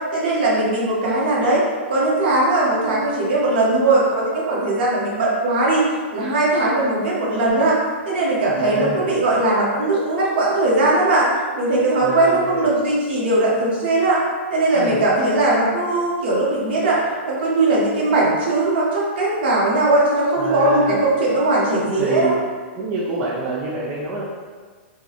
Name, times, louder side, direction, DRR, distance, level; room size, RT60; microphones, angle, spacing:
voice 1, 0.1-1.6 1.9-5.8 6.1-7.8 8.0-11.3 11.5-14.2 14.5-17.0 17.3-22.3, right 2 dB, 50° right, -6 dB, 1.1 m, -19 dB
voice 2, 8.5-9.1 12.0-12.7 14.7-15.0 20.4-21.0 21.9-22.4 22.8-24.2, right 3 dB, 20° right, -7 dB, 0.4 m, -26 dB
4.4 x 2.1 x 2.9 m, 1.5 s
hypercardioid pair, 170°, 7 cm